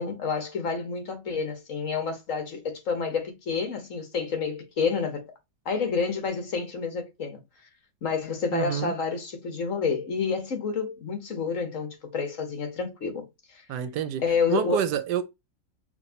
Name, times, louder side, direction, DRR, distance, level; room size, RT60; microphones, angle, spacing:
voice 1, 0.0-5.3 5.6-7.4 8.0-13.6 14.2-14.9, left 5 dB, 50° left, 1.3 m, -29 dB
voice 2, 8.5-8.9 13.7-14.2 14.5-15.2, right 9 dB, 75° right, 1.1 m, -27 dB
5.9 x 2.7 x 2.7 m
omnidirectional pair, 1.9 m